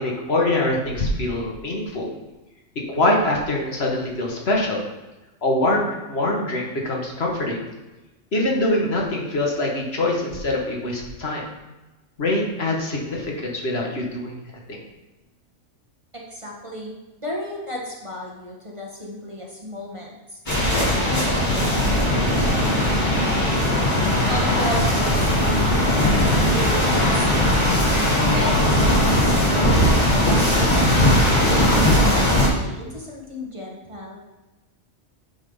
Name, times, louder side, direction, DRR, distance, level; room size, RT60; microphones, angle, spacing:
voice 1, 0.0-2.1 2.9-4.8 5.4-7.6 8.3-11.5 12.2-14.3 14.7-14.8, left 1 dB, 60° left, -1 dB, 1.5 m, -24 dB
voice 2, 16.1-16.9 17.2-23.5 24.3-27.5 28.2-30.7 31.4-34.2, left 1 dB, 25° right, -3 dB, 1.3 m, -34 dB
sound 1, 20.5-32.5, left 1 dB, 40° left, 2.3 m, -19 dB
9.1 x 3.6 x 5.5 m, 1.1 s
omnidirectional pair, 1.2 m